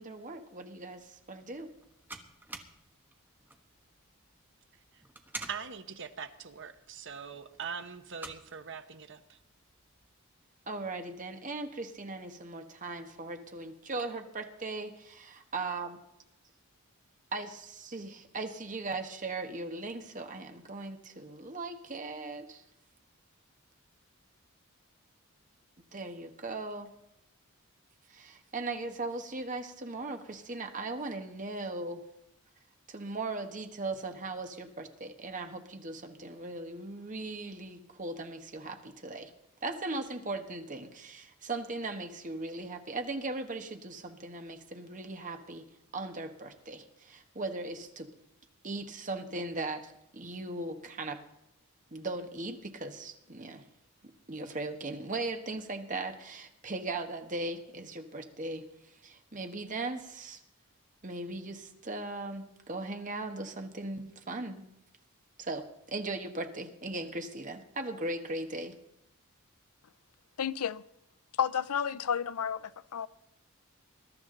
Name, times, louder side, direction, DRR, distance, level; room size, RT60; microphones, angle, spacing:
voice 1, 0.0-1.7 10.7-16.0 17.3-22.6 25.9-26.9 28.1-32.0 32.9-39.3 39.6-45.6 45.9-48.1 48.6-51.2 51.9-53.6 54.3-60.4 61.0-64.7 65.4-68.7, right 2 dB, 35° right, 1.4 m, -38 dB
sound 1, 1.0-10.1, right 2 dB, 10° right, 1.2 m, -50 dB
voice 2, 5.5-9.4, right 6 dB, 55° right, 1.0 m, -42 dB
voice 3, 70.4-70.8 71.4-73.1, left 8 dB, 90° left, 0.5 m, -31 dB
21.0 x 12.5 x 3.9 m
head